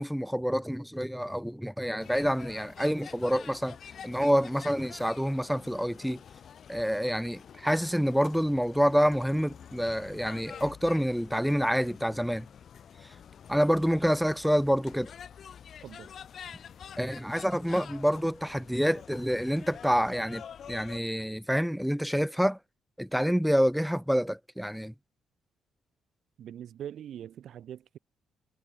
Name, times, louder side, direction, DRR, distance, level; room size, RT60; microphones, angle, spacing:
voice 1, 0.0-3.8 4.0-6.2 6.7-12.5 13.5-15.1 17.0-20.4 20.7-22.6 23.0-24.9, equal, ahead, 0.4 m, -27 dB
sound 1, 2.0-21.0, left 8 dB, 55° left, 3.7 m, -48 dB
voice 2, 26.4-28.0, right 10 dB, 70° right, 2.3 m, -42 dB
cardioid pair, 90°, 0 cm